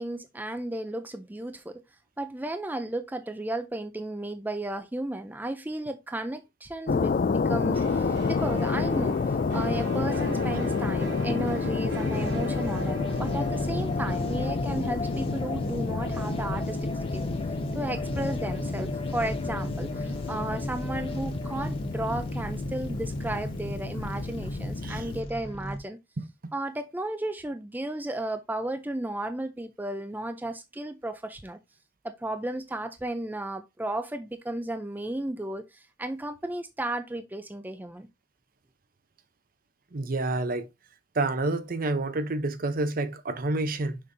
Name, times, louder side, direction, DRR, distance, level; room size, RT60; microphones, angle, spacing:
voice 1, 0.0-1.8 2.2-17.3 17.7-26.0 26.5-31.6 32.0-38.1, right 1 dB, 10° right, 0.4 m, -34 dB
sound 1, 6.9-25.2, left 4 dB, 50° left, 0.4 m, -30 dB
sound 2, 7.7-15.2, equal, 65° right, 2.8 m, -39 dB
sound 3, 12.1-25.8, equal, 30° left, 1.5 m, -35 dB
voice 2, 39.9-40.7 41.1-44.0, right 2 dB, 50° right, 0.7 m, -28 dB
6.6 x 5.4 x 2.6 m
head